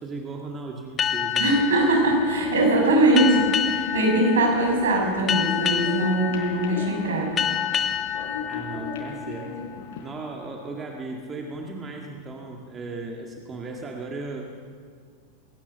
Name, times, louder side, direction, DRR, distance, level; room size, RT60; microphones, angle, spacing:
voice 1, 0.0-1.5 8.5-9.5 10.0-14.5, right 3 dB, 20° right, 1 dB, 2.1 m, -36 dB
sound 1, 1.0-10.1, left 8 dB, 25° left, 1.3 m, -29 dB
voice 2, 1.4-7.3, right 1 dB, 65° right, 0 dB, 6.9 m, -21 dB
sound 2, 1.7-10.1, left 4 dB, 55° left, 4.1 m, -37 dB
21.5 x 18.5 x 7.0 m, 2.1 s
figure-of-eight pair, 90°, 0 cm